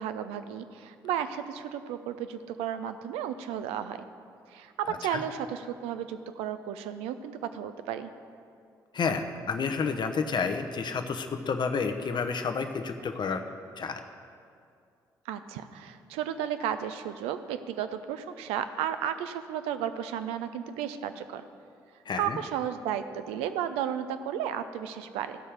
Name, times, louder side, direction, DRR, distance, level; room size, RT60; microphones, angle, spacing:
voice 1, 0.0-4.0 4.5-8.1 15.3-21.4 22.2-25.4, right 9 dB, 70° right, 10 dB, 0.5 m, -33 dB
voice 2, 4.9-5.2 8.9-13.4 13.8-14.0 22.1-22.4, left 5 dB, 45° left, 7 dB, 0.9 m, -30 dB
14.0 x 5.5 x 6.5 m, 2.4 s
figure-of-eight pair, 45°, 11 cm